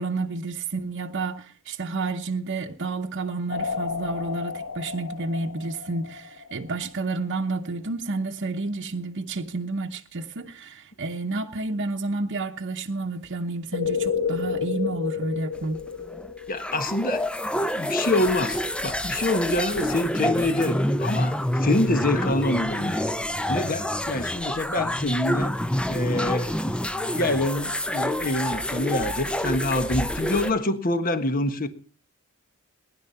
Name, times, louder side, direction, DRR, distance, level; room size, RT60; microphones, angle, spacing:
voice 1, 0.0-15.8, right 3 dB, 55° right, 1.0 m, -30 dB
sound 1, 3.5-6.9 13.7-16.5, left 6 dB, 80° left, 1.8 m, -30 dB
sound 2, 15.5-30.5, equal, 5° left, 0.6 m, -27 dB
voice 2, 16.5-17.3 17.8-23.0 23.5-25.5 25.9-26.6 27.1-31.7, left 2 dB, 40° left, 1.5 m, -26 dB
20.0 x 11.0 x 5.7 m
head